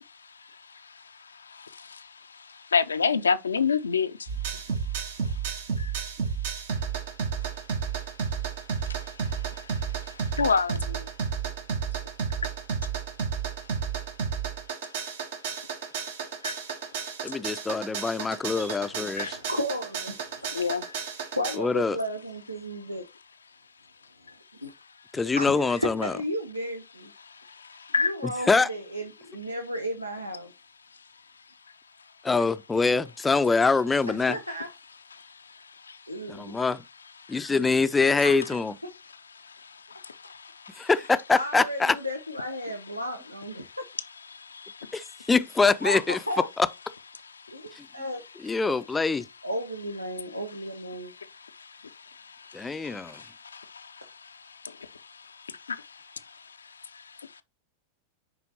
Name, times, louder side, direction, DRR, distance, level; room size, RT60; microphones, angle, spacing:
voice 1, 2.7-4.1 5.8-5.9 10.4-11.0 16.4-16.5 19.2-19.3 20.5-20.8 27.9-28.1, left 5 dB, 75° left, 0.5 m, -24 dB
sound 1, 4.3-21.6, right 6 dB, 55° right, 1.1 m, -32 dB
voice 2, 17.2-19.3 21.6-22.0 25.1-26.1 28.5-28.7 32.2-34.4 36.3-36.8 37.3-38.7 40.8-42.0 44.9-46.2 47.8-47.9 48.4-49.2 52.5-53.2, left 4 dB, 10° left, 0.5 m, -24 dB
voice 3, 18.6-20.5 21.4-23.1 24.6-24.7 25.4-27.1 28.0-30.5 34.1-34.7 36.1-36.5 38.2-38.6 38.8-38.9 41.3-43.9 45.8-46.5 47.5-48.2 49.4-51.1, equal, 90° right, 0.8 m, -34 dB
10.0 x 3.8 x 2.8 m
figure-of-eight pair, 90°, 0 cm